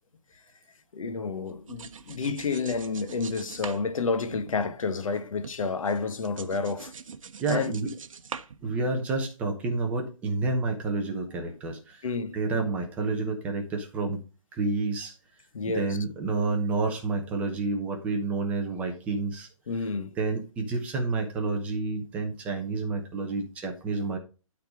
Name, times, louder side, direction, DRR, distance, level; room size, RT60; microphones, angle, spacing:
voice 1, 0.9-6.9 7.5-7.7 12.0-12.4 15.5-16.0 19.7-20.1, left 4 dB, 65° left, 1.2 m, -30 dB
sound 1, 1.5-5.2 5.4-9.2, right 6 dB, 65° right, 1.0 m, -43 dB
voice 2, 7.4-7.9 8.6-12.1 12.3-14.2 14.5-15.2 15.7-19.5 20.2-24.2, right 3 dB, 5° right, 0.9 m, -29 dB
12.0 x 4.1 x 4.9 m
hypercardioid pair, 170°, 18 cm